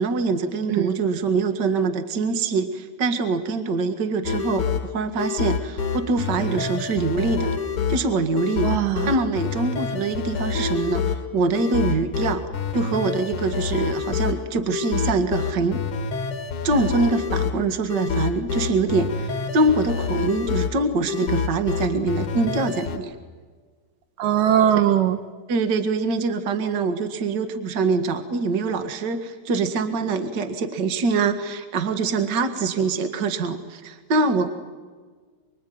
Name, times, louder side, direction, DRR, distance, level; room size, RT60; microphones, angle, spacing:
voice 1, 0.0-4.7 4.9-7.5 7.9-8.7 9.0-12.4 12.7-15.8 16.6-23.1 25.5-34.5, right 3 dB, 35° right, 8 dB, 2.0 m, -24 dB
sound 1, 4.2-23.0, left 5 dB, 50° left, 2.1 m, -27 dB
voice 2, 8.6-9.1 24.2-25.2, right 10 dB, 75° right, 9 dB, 2.6 m, -20 dB
26.0 x 24.0 x 9.5 m, 1.5 s
omnidirectional pair, 4.0 m